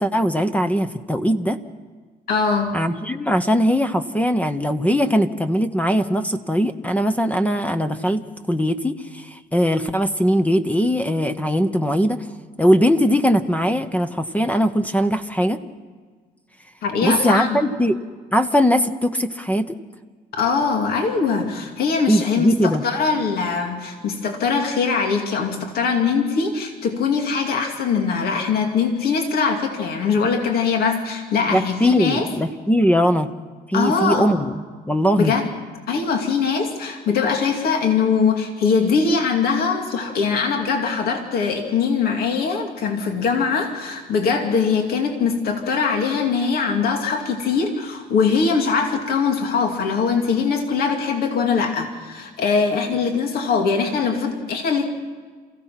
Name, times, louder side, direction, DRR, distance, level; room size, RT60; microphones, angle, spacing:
voice 1, 0.0-1.6 2.7-12.3 12.6-15.6 17.0-18.0 18.3-19.8 22.1-22.8 31.5-33.3 33.7-35.3, equal, 10° left, 9 dB, 0.9 m, -20 dB
voice 2, 2.3-2.8 16.8-17.6 20.3-32.3 33.7-34.4 35.2-35.4 35.9-54.9, left 5 dB, 65° left, 3 dB, 2.5 m, -22 dB
28.0 x 15.5 x 5.9 m, 1.5 s
cardioid pair, 110°, 17 cm